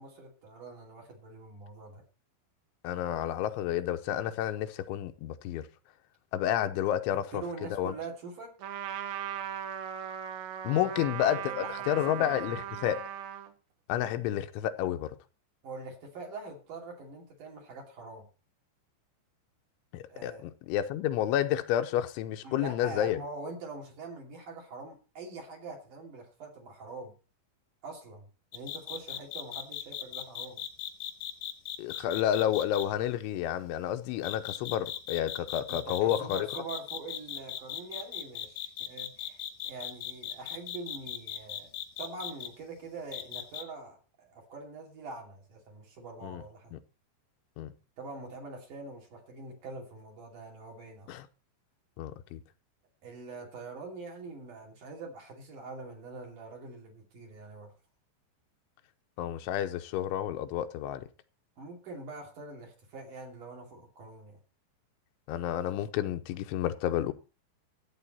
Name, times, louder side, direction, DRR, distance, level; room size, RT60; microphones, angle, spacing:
voice 1, 0.0-2.0 7.3-8.6 10.8-11.0 11.3-12.5 15.6-18.2 20.1-20.5 22.4-27.1 27.8-30.6 35.7-41.7 42.0-46.7 48.0-51.2 53.0-57.7 61.6-64.4, right 3 dB, 50° right, 3.9 m, -44 dB
voice 2, 2.8-5.7 6.3-7.4 7.7-7.9 10.6-13.0 13.9-15.2 19.9-23.2 31.8-36.5 46.2-46.4 46.7-46.8 47.6-47.7 51.1-51.3 52.0-52.4 59.2-61.1 65.3-67.1, left 11 dB, 85° left, 3.2 m, -30 dB
Trumpet, 8.6-13.5, right 10 dB, 70° right, 2.5 m, -38 dB
sound 1, 28.5-32.8 34.2-42.5 43.1-43.6, left 11 dB, 65° left, 2.1 m, -38 dB
13.5 x 9.0 x 4.2 m
omnidirectional pair, 5.3 m